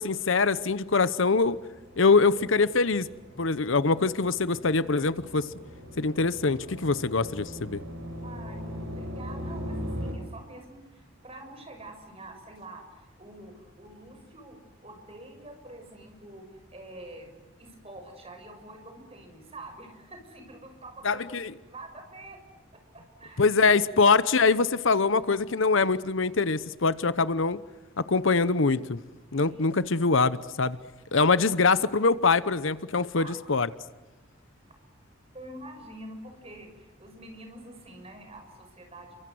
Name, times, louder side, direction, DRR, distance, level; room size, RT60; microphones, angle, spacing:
voice 1, 0.0-1.6 2.0-3.1 3.4-5.5 6.0-7.8 21.0-21.5 23.4-27.6 28.0-29.0 29.3-30.8 31.1-33.7, left 4 dB, 65° left, 16 dB, 0.9 m, -23 dB
sound 1, 1.4-10.1, equal, 75° right, 7.0 m, -40 dB
voice 2, 8.2-16.5 16.7-17.3 17.6-22.4 22.7-23.8 29.3-30.0 33.1-33.3 35.3-39.2, right 1 dB, 30° right, 5 dB, 6.6 m, -46 dB
30.0 x 24.5 x 7.8 m, 1.2 s
head